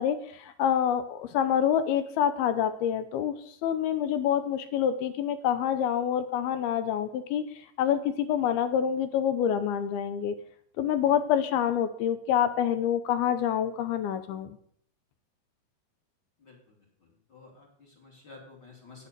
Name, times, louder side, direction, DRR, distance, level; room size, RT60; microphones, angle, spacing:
voice 1, 0.0-3.4 3.6-7.5 7.8-10.4 10.8-14.6, left 9 dB, 75° left, 11 dB, 2.6 m, -27 dB
voice 2, 16.4-16.7 17.3-19.1, left 3 dB, 30° left, -1 dB, 3.0 m, -51 dB
11.0 x 8.5 x 6.8 m, 0.63 s
omnidirectional pair, 4.8 m